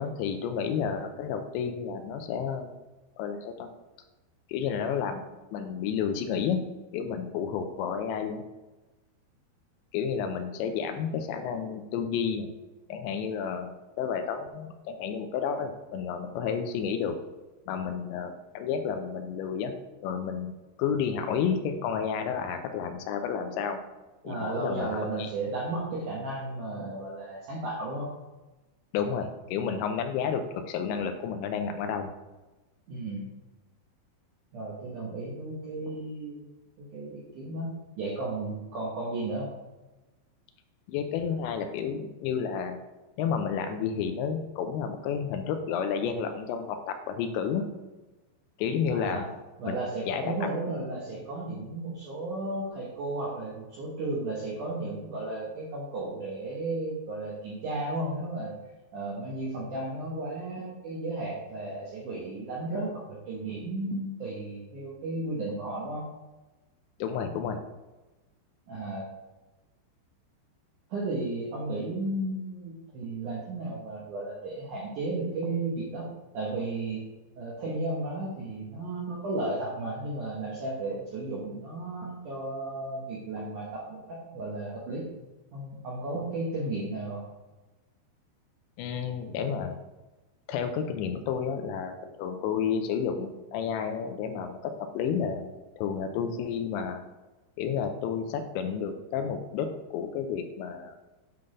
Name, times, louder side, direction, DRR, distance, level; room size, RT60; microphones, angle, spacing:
voice 1, 0.0-2.7 3.2-3.7 4.5-5.2 5.5-6.6 6.9-8.4 9.9-12.5 12.9-17.2 17.7-19.7 20.0-20.5 20.8-23.8 24.2-24.9 25.2-25.3 28.9-32.1 40.9-42.8 43.2-47.7 48.6-49.2 49.7-49.8 50.1-50.3 67.0-67.6 88.8-89.7 90.5-97.0 97.6-101.0, left 7 dB, 90° left, 6 dB, 2.9 m, -31 dB
voice 2, 24.2-28.1 32.9-33.3 34.5-36.5 36.8-39.6 48.9-49.3 49.6-58.5 58.9-66.0 68.7-69.1 70.9-77.1 77.4-85.1 85.5-87.2, right 2 dB, 75° right, -5 dB, 1.8 m, -34 dB
9.2 x 3.8 x 3.7 m, 1.1 s
omnidirectional pair, 5.1 m